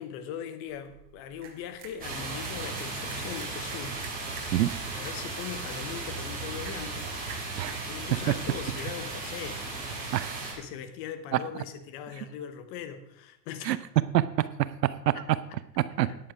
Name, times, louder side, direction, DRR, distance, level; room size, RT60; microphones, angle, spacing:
voice 1, 0.0-4.0 4.9-7.1 7.7-9.6 10.6-13.8 15.1-15.6 16.0-16.2, left 8 dB, 25° left, 10 dB, 0.8 m, -40 dB
sound 1, 0.7-10.2, right 7 dB, 45° right, 2.5 m, -51 dB
sound 2, 2.0-10.5, right 3 dB, 15° right, 3.9 m, -36 dB
voice 2, 10.1-10.6 11.3-11.4 13.6-13.8 14.1-15.2 15.8-16.3, right 14 dB, 75° right, 15 dB, 0.7 m, -27 dB
10.0 x 8.7 x 5.0 m, 0.81 s
supercardioid pair, 155°, 50 cm